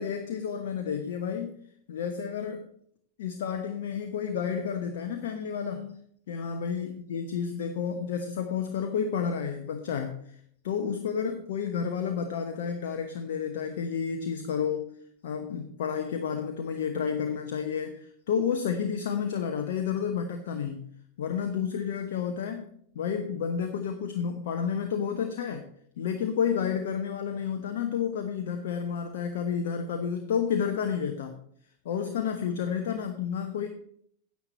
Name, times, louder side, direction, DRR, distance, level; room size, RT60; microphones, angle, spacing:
voice 1, 0.0-1.6 1.9-2.7 3.2-6.0 6.3-10.4 10.6-14.9 15.2-20.9 21.2-22.7 22.9-25.6 26.0-31.3 31.8-33.7, left 7 dB, 55° left, 5 dB, 1.0 m, -30 dB
9.8 x 8.6 x 4.2 m, 0.65 s
figure-of-eight pair, 90°, 0 cm